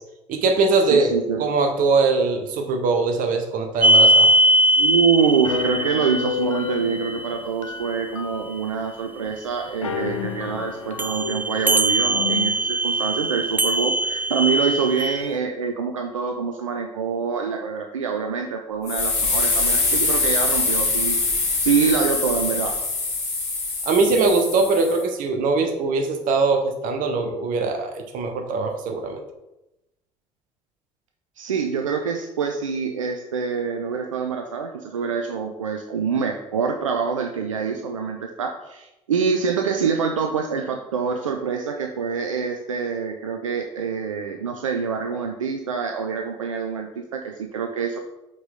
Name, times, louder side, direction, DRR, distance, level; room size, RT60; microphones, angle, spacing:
voice 1, 0.3-1.1 1.4-4.3 23.9-29.2, right 3 dB, 60° right, 4 dB, 1.1 m, -21 dB
voice 2, 0.9-1.4 4.8-21.2 21.6-22.8 31.4-48.0, right 6 dB, 85° right, 4 dB, 0.4 m, -25 dB
sound 1, 3.8-7.4 11.0-15.3, right 1 dB, 10° right, 0.3 m, -20 dB
sound 2, 5.4-8.8 9.2-9.3 9.6-12.6, left 8 dB, 85° left, 0.4 m, -31 dB
sound 3, 18.9-25.0, left 3 dB, 45° left, 2.3 m, -23 dB
6.2 x 4.7 x 3.7 m, 0.96 s
figure-of-eight pair, 50°, 16 cm